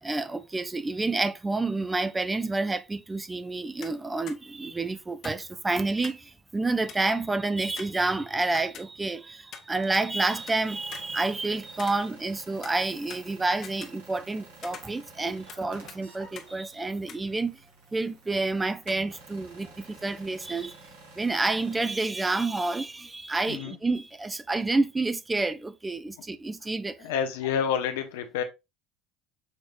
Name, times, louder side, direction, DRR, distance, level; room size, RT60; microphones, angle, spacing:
voice 1, 0.0-17.6 17.9-20.8 21.2-27.0, right 3 dB, 15° right, 0.6 m, -29 dB
sound 1, 3.8-4.0 4.3-4.4 5.2-6.3 6.6-6.7 6.9-7.2 7.8-9.2 9.5-10.6 10.9-12.4 12.6-14.3 14.6-15.6 15.9-16.0 16.4-16.5 17.1-17.2, left 7 dB, 55° left, 1.0 m, -45 dB
sound 2, 10.3-21.8, right 3 dB, 80° right, 2.5 m, -51 dB
voice 2, 27.0-28.4, left 8 dB, 80° left, 0.9 m, -28 dB
6.5 x 3.2 x 2.6 m
hypercardioid pair, 70°, 0 cm